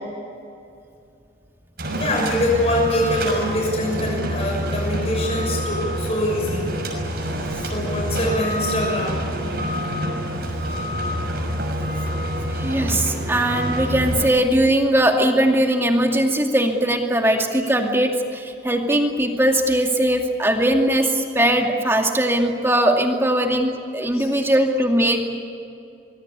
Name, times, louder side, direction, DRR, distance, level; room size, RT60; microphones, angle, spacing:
sound 1, 1.8-14.3, equal, 55° right, 6.2 m, -26 dB
voice 1, 1.9-6.7 7.6-9.2 23.9-24.3, left 1 dB, 35° left, -1 dB, 6.7 m, -24 dB
voice 2, 12.5-25.3, right 1 dB, 15° right, 2 dB, 2.4 m, -20 dB
25.0 x 22.0 x 8.5 m, 2.5 s
head